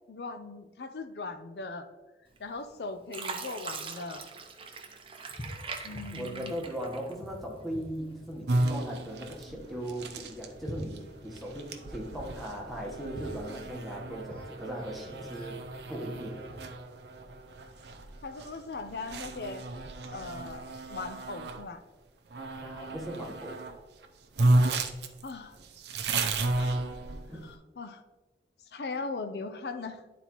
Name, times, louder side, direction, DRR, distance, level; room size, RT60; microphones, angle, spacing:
voice 1, 0.1-1.9 2.4-4.3 5.8-6.5 18.2-19.6 20.1-20.6 20.9-21.8 25.2-25.6 26.5-26.8 27.4-28.0 28.7-30.0, left 3 dB, 65° left, 8 dB, 0.6 m, -39 dB
Fill (with liquid), 2.4-2.7 3.1-7.5 7.9-8.8 9.3-9.5, right 4 dB, 30° right, 0.6 m, -42 dB
sound 1, 5.3-16.8, left 1 dB, 30° left, 1.0 m, -48 dB
voice 2, 6.1-15.6 15.9-16.5 22.6-23.6 27.1-27.5, right 1 dB, ahead, -2 dB, 1.1 m, -38 dB
sound 2, 8.5-21.6 22.3-23.7 24.0-24.1 24.4-27.5, right 2 dB, 75° right, 0.6 m, -33 dB
11.0 x 4.1 x 3.0 m, 1.2 s
head